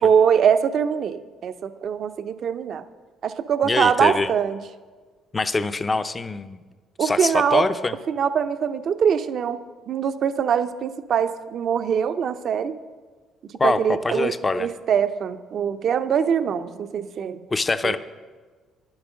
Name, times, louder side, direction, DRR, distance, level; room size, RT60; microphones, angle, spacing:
voice 1, 0.0-2.8 3.2-4.6 7.0-7.6 8.1-12.8 13.6-14.3 14.6-17.4 17.8-18.0, right 7 dB, 55° right, 10 dB, 0.6 m, -23 dB
voice 2, 3.6-4.3 5.3-6.6 7.0-7.9 13.6-14.7 17.5-18.0, left 3 dB, 20° left, 11 dB, 0.6 m, -24 dB
10.5 x 10.5 x 6.3 m, 1.4 s
cardioid pair, 115°, 0 cm